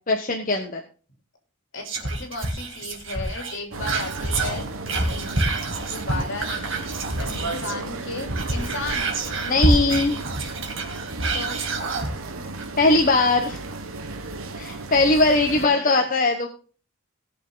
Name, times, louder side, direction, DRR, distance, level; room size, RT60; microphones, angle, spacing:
voice 1, 0.1-0.8 5.1-5.3 7.3-7.6 9.4-10.2 12.8-13.6 14.6-16.5, left 2 dB, 40° left, 3 dB, 1.1 m, -20 dB
voice 2, 1.7-4.7 5.9-6.9 7.2-9.1 11.3-11.6 15.4-16.1, left 2 dB, 60° left, 3 dB, 3.4 m, -35 dB
Whispering, 1.8-7.8 8.2-12.1 12.6-12.7, right 2 dB, 65° right, 2.4 m, -27 dB
sound 1, 3.7-15.7, right 2 dB, 85° right, 1.4 m, -34 dB
17.5 x 6.8 x 4.0 m, 0.39 s
head